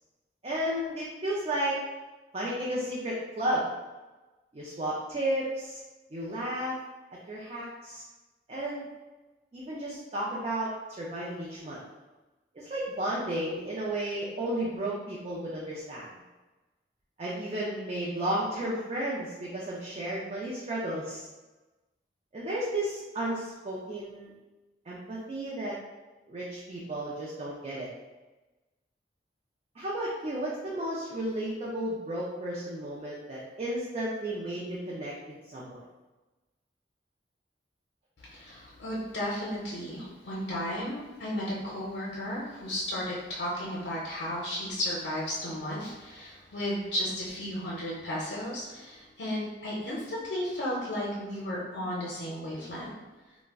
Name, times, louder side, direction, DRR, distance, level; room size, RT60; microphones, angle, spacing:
voice 1, 0.4-1.8 2.3-3.7 4.5-5.8 6.1-6.8 7.3-8.0 8.5-8.9 9.5-11.8 12.5-16.1 17.2-21.3 22.3-24.3 24.9-25.8 26.3-27.9 29.8-35.2 35.5-35.8, right 1 dB, 35° right, -5 dB, 0.4 m, -33 dB
voice 2, 38.2-52.9, equal, 75° left, -6 dB, 0.6 m, -34 dB
2.3 x 2.0 x 3.4 m, 1.2 s
head